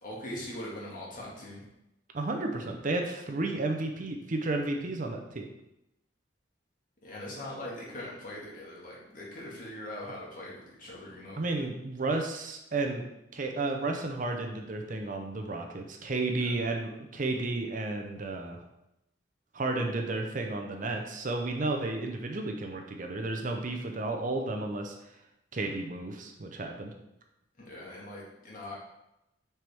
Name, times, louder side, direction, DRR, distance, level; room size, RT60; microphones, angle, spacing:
voice 1, 0.0-1.6 7.0-11.4 16.4-16.6 27.6-28.8, left 1 dB, 45° left, -4 dB, 1.8 m, -41 dB
voice 2, 2.1-5.5 11.4-13.0 13.3-18.6 19.5-24.9 25.5-26.9, right 2 dB, 45° right, 3 dB, 0.6 m, -32 dB
6.2 x 4.5 x 3.4 m, 0.85 s
head